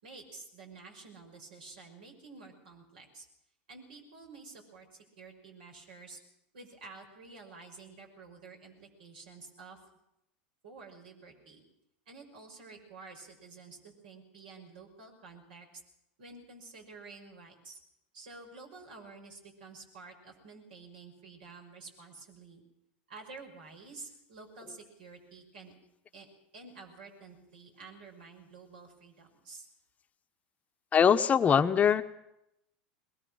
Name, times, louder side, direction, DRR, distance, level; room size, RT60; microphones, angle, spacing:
voice 1, 0.0-3.3 3.7-6.2 6.5-9.8 10.6-11.7 12.1-15.7 16.2-17.8 18.1-22.6 23.1-25.7 26.1-26.3 26.5-29.7, right 4 dB, 75° right, 2 dB, 6.0 m, -50 dB
voice 2, 30.9-32.0, left 7 dB, 30° left, 9 dB, 0.9 m, -22 dB
21.5 x 20.0 x 6.4 m, 0.84 s
hypercardioid pair, 90°, 5 cm